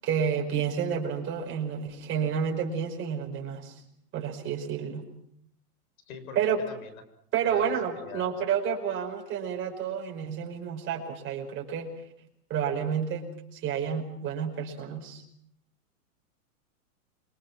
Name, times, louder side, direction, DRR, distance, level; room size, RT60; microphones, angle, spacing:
voice 1, 0.0-3.7 4.1-5.0 6.3-6.6 7.3-11.9 12.5-13.2 13.5-15.2, right 7 dB, 25° right, 2 dB, 5.1 m, -30 dB
voice 2, 6.0-6.4 6.7-7.0 7.4-8.3, left 6 dB, 65° left, 10 dB, 6.2 m, -43 dB
29.0 x 24.5 x 6.1 m, 0.70 s
supercardioid pair, 155°, 45 cm